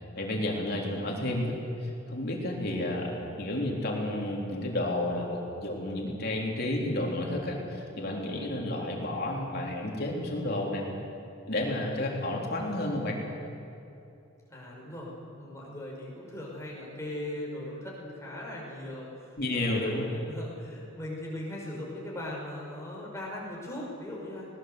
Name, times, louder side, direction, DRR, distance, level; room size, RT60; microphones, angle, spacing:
voice 1, 0.2-10.9 11.5-13.2 19.4-20.1, left 1 dB, 50° left, -1 dB, 3.7 m, -31 dB
voice 2, 14.5-24.5, left 1 dB, 15° left, -3 dB, 5.4 m, -39 dB
20.0 x 19.5 x 8.0 m, 2.8 s
head